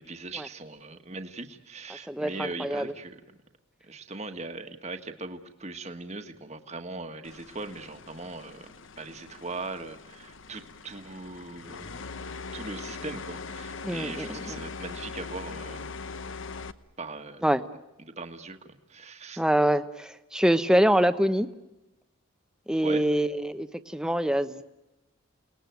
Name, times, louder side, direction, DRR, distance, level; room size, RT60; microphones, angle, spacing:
voice 1, 0.0-3.4 3.8-8.7 9.0-11.9 12.5-16.0 17.0-17.5 18.2-19.4 22.8-23.0, right 3 dB, 30° right, 6 dB, 1.5 m, -39 dB
voice 2, 2.1-2.9 13.8-14.6 17.4-17.6 19.4-21.5 22.7-24.6, equal, 5° right, 10 dB, 0.9 m, -25 dB
sound 1, 7.2-16.7, left 4 dB, 60° left, 1.0 m, -41 dB
29.0 x 19.5 x 9.3 m, 1.0 s
head